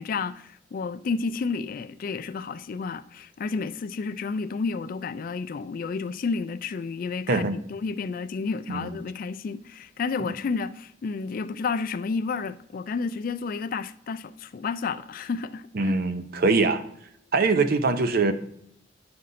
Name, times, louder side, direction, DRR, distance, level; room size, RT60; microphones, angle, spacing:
voice 1, 0.0-15.9, left 4 dB, 50° left, 0.3 m, -31 dB
voice 2, 7.3-7.6 8.7-8.9 10.2-10.3 15.7-16.8 17.3-18.3, right 3 dB, 55° right, 0.6 m, -23 dB
9.4 x 5.7 x 2.5 m
head